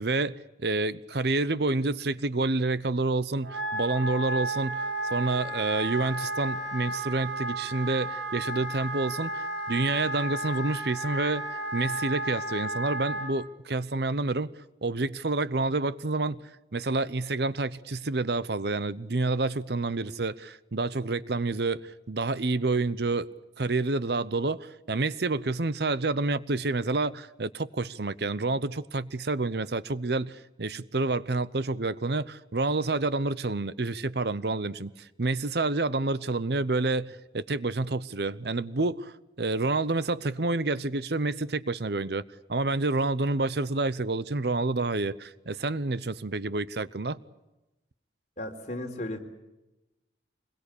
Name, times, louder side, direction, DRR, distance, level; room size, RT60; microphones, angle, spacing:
voice 1, 0.0-11.4 11.7-14.5 14.8-16.4 16.7-23.3 23.6-42.2 42.5-47.2, right 3 dB, 60° right, 0.8 m, -28 dB
Wind instrument woodwind instrument, 3.4-13.3, right 1 dB, 85° right, 6.4 m, -33 dB
voice 2, 48.4-49.2, left 1 dB, 40° left, 4.0 m, -35 dB
26.0 x 21.5 x 8.5 m
head